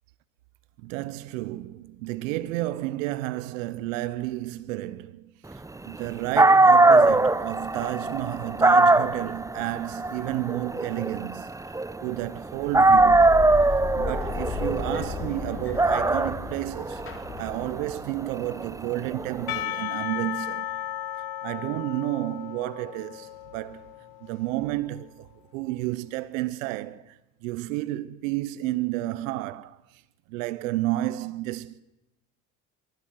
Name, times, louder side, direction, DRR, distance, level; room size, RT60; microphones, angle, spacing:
voice 1, 0.8-5.3 5.9-11.5 12.0-13.3 13.9-17.0 17.4-20.7 21.4-23.8 24.2-29.8 30.3-31.8, right 16 dB, 85° right, 1.0 m, -31 dB
Dog, 6.1-6.2 6.4-12.4 12.7-19.5, right 2 dB, 10° right, 0.8 m, -21 dB
sound 1, 12.5-18.1, left 4 dB, 35° left, 3.6 m, -35 dB
Percussion / Church bell, 19.5-24.7, left 12 dB, 70° left, 1.5 m, -35 dB
23.0 x 13.0 x 9.2 m
supercardioid pair, 85°, 38 cm